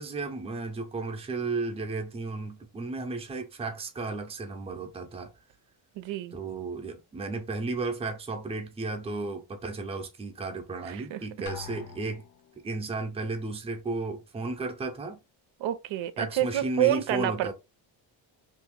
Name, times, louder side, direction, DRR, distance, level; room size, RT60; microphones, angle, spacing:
voice 1, 0.0-5.3 6.3-12.2 12.6-15.2 16.2-17.5, right 3 dB, 15° right, 0.5 m, -34 dB
voice 2, 6.0-6.4 10.9-11.2 15.6-17.5, right 12 dB, 80° right, 0.6 m, -28 dB
Drum, 11.5-12.7, left 7 dB, 70° left, 0.6 m, -44 dB
2.8 x 2.6 x 3.6 m
cardioid pair, 180°, 45 cm